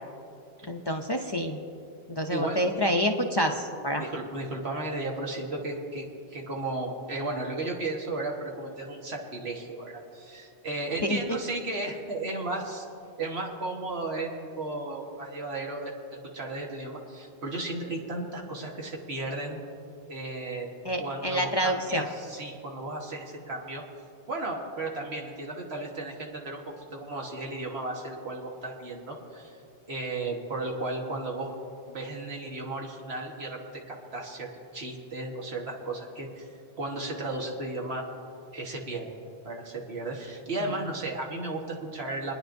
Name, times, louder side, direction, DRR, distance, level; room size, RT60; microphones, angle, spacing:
voice 1, 0.7-1.6 2.1-4.0 11.0-11.2 20.8-22.0 40.6-40.7, equal, 30° left, 3 dB, 0.5 m, -27 dB
voice 2, 4.0-12.8 13.2-14.3 14.6-19.6 20.1-20.7 21.0-23.8 24.3-29.6 29.9-31.5 31.9-36.5 36.8-38.1 38.5-39.1 39.4-42.3, right 2 dB, 80° right, 0 dB, 1.7 m, -34 dB
25.5 x 10.0 x 2.6 m, 2.6 s
omnidirectional pair, 1.1 m